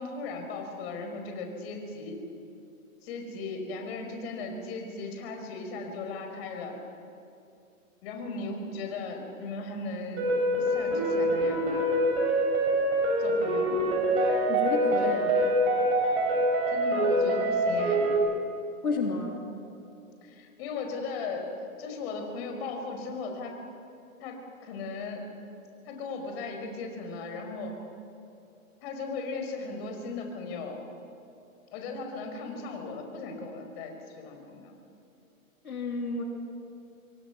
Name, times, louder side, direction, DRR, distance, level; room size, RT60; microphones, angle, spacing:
voice 1, 0.0-2.2 3.0-6.8 8.0-10.3 10.6-11.7 13.2-14.0 14.9-15.1 16.7-18.1 20.2-21.5 21.8-23.6 24.2-25.2 25.9-27.8 28.8-30.8 31.7-34.7, left 3 dB, 45° left, 3 dB, 5.2 m, -37 dB
sound 1, 10.2-18.2, right 1 dB, 50° right, 7.3 m, -25 dB
voice 2, 14.5-15.3 18.8-19.4 35.6-36.2, left 3 dB, 90° left, 1 dB, 3.5 m, -31 dB
26.5 x 22.5 x 6.1 m, 2.7 s
hypercardioid pair, 135°, 42 cm